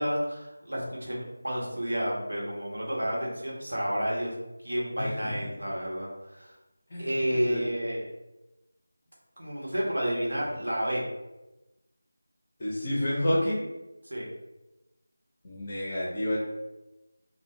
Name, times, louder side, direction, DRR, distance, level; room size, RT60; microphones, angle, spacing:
voice 1, 0.0-4.3 4.6-6.5 7.0-8.1 9.4-11.0 14.0-14.2, equal, 75° right, -3 dB, 0.9 m, -30 dB
voice 2, 12.6-13.6 15.4-16.4, left 1 dB, 35° left, -5 dB, 0.6 m, -29 dB
2.3 x 2.1 x 3.0 m, 1.0 s
figure-of-eight pair, 170°, 0 cm